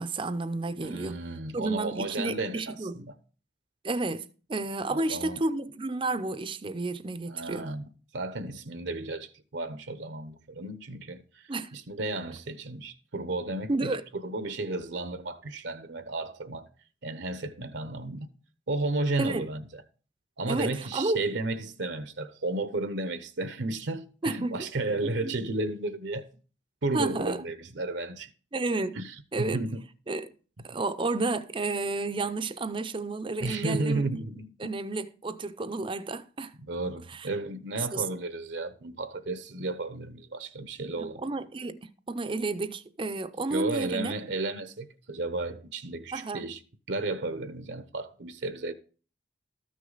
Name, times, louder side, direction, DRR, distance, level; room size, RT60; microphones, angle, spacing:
voice 1, 0.0-1.2 1.5-3.0 3.8-4.2 4.5-7.7 11.5-11.7 13.7-14.1 19.2-19.5 20.5-21.2 24.2-24.7 25.0-25.3 26.9-27.4 28.5-29.0 29.3-29.6 30.1-30.3 30.6-34.0 34.6-36.5 37.1-37.3 37.9-38.0 41.0-44.1 46.1-46.5, right 3 dB, 25° right, 0.5 m, -31 dB
voice 2, 0.8-3.1 4.9-5.4 7.3-7.8 8.1-16.7 17.0-18.3 18.7-19.8 20.4-26.3 26.8-28.3 28.9-29.8 33.4-34.5 36.7-41.2 43.5-46.6 46.9-48.7, right 2 dB, 70° right, 0.8 m, -33 dB
13.5 x 6.3 x 4.0 m
head